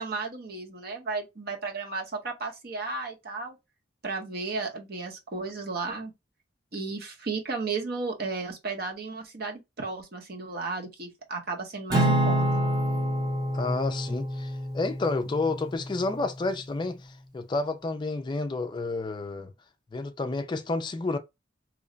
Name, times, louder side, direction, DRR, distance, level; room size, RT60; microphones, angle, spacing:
voice 1, 0.0-3.6 4.0-6.1 6.7-12.5, right 4 dB, 55° right, 0.9 m, -34 dB
Acoustic guitar / Strum, 11.9-16.4, right 1 dB, 20° right, 0.8 m, -27 dB
voice 2, 13.5-19.5 19.9-21.2, left 3 dB, 25° left, 0.3 m, -30 dB
3.0 x 2.1 x 3.8 m
head